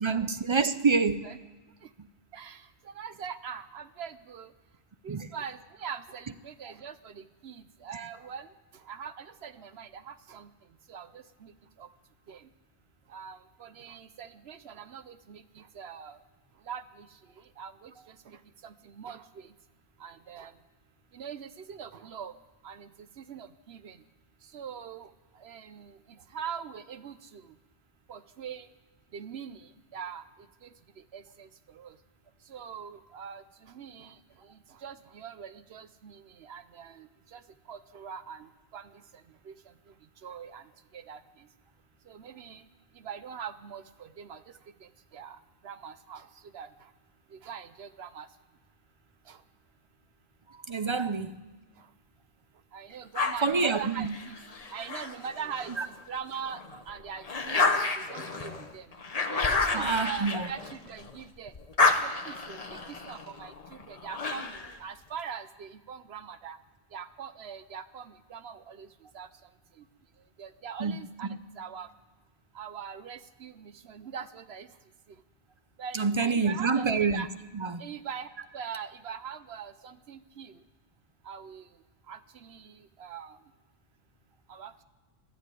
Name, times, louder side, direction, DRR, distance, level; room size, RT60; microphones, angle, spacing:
voice 1, 0.0-1.2 5.1-5.3 50.7-51.3 53.4-54.2 55.8-55.9 59.7-60.5 70.8-71.0 75.9-77.2 77.5-77.8, right 4 dB, 35° right, 0.5 m, -27 dB
voice 2, 2.3-4.5 5.0-8.5 8.9-10.5 10.9-11.5 11.8-11.9 12.3-12.4 13.1-16.2 16.7-17.1 17.6-19.5 20.0-20.5 21.1-22.3 22.6-22.9 23.2-24.0 24.5-25.1 25.4-27.5 28.1-28.7 29.1-30.2 30.6-30.7 31.1-31.5 31.7-31.9 32.5-34.2 34.5-37.4 37.7-38.9 39.5-39.6 40.2-40.6 40.9-41.2 42.1-42.6 43.0-44.4 44.8-45.4 45.6-46.3 46.5-46.7 47.3-48.3 49.3-49.4 52.7-54.3 54.7-56.6 56.9-58.9 59.3-61.5 61.8-66.6 66.9-68.9 69.1-69.3 70.4-71.3 71.6-71.9 72.5-74.7 75.8-76.9 77.1-77.3 77.8-80.5 81.3-81.7 82.1-83.4 84.5-84.7, right 7 dB, 75° right, 1.0 m, -42 dB
sound 1, 53.1-55.8 56.3-61.2 61.5-64.8, left 3 dB, 40° left, 1.1 m, -30 dB
13.5 x 12.0 x 9.1 m
omnidirectional pair, 1.1 m